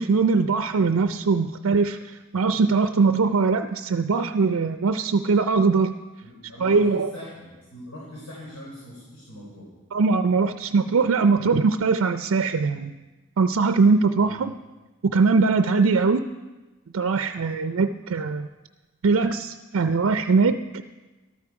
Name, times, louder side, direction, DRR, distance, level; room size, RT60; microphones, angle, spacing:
voice 1, 0.0-6.0 6.6-7.1 9.9-13.0 13.4-14.5 15.0-16.2 16.9-18.5 19.0-20.8, right 4 dB, 75° right, 10 dB, 0.4 m, -21 dB
voice 2, 6.2-9.7 14.2-14.4, left 1 dB, 85° left, -5 dB, 3.9 m, -41 dB
13.5 x 12.5 x 4.8 m, 1.2 s
head